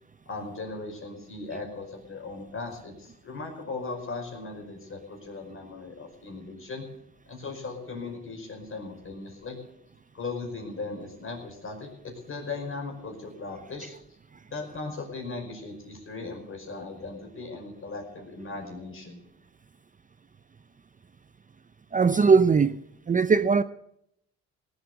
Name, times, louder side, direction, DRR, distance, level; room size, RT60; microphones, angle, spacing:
voice 1, 0.3-6.9 7.3-9.6 10.1-13.9 14.5-19.2, left 3 dB, 45° left, 5.3 m, -38 dB
voice 2, 21.9-22.8 23.1-23.6, right 5 dB, 25° right, 0.6 m, -20 dB
18.0 x 8.2 x 8.1 m
cardioid pair, 90°, 30 cm